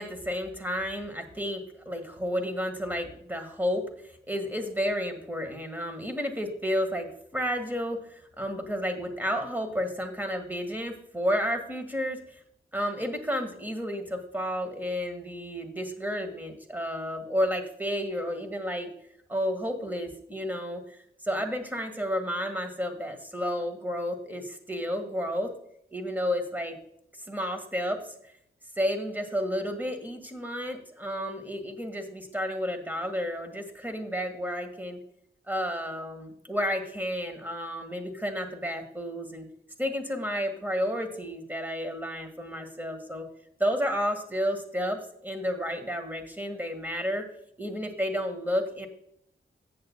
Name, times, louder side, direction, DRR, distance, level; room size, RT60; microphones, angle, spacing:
voice 1, 0.0-12.4 12.7-18.9 19.3-25.5 25.9-26.8 27.3-28.0 28.8-35.0 35.5-39.5 39.8-43.3 43.6-47.2 47.6-48.9, equal, 10° right, 5 dB, 1.7 m, -31 dB
14.5 x 7.8 x 2.3 m, 0.71 s
wide cardioid pair, 85°, 21 cm